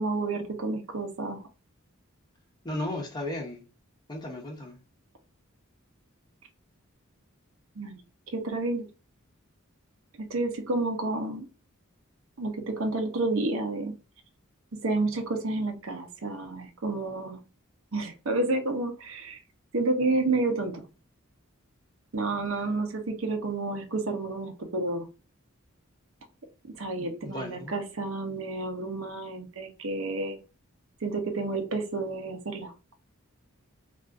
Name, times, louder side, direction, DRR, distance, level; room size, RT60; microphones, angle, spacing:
voice 1, 0.0-1.4 7.8-8.0 8.3-8.9 10.2-11.5 12.4-14.0 14.7-17.4 17.9-19.4 19.7-20.8 22.1-25.1 26.7-30.4 31.0-32.9, right 2 dB, 65° right, 0.7 m, -30 dB
voice 2, 2.6-3.6 4.1-4.8 27.0-27.7, left 1 dB, 20° left, 0.6 m, -35 dB
3.5 x 2.4 x 2.4 m
head